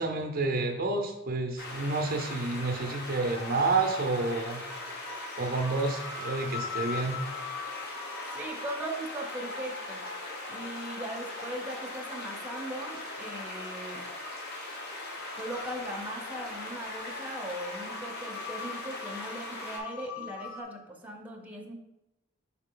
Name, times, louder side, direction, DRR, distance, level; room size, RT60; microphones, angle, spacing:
voice 1, 0.0-4.6 5.4-7.2, right 3 dB, 45° right, 4 dB, 0.6 m, -29 dB
sound 1, 1.6-19.8, left 2 dB, 55° left, 1.1 m, -40 dB
sound 2, 3.1-20.6, left 5 dB, 85° left, 0.8 m, -44 dB
voice 2, 8.3-10.0 10.5-14.1 15.4-21.7, right 1 dB, 10° right, 1 dB, 0.8 m, -39 dB
6.1 x 4.0 x 3.8 m, 0.89 s
head